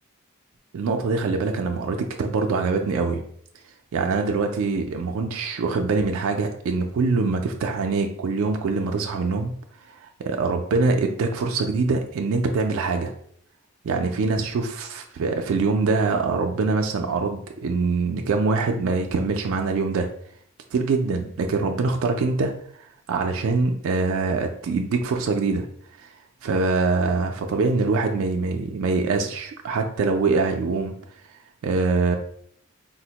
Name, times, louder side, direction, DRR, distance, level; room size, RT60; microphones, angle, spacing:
voice 1, 0.7-3.2 3.9-9.5 9.9-13.1 13.8-20.1 20.7-22.5 22.8-25.7 26.0-26.1 26.4-31.0 31.6-32.1, right 4 dB, 75° right, 3 dB, 0.3 m, -24 dB
3.9 x 2.1 x 2.8 m, 0.65 s
head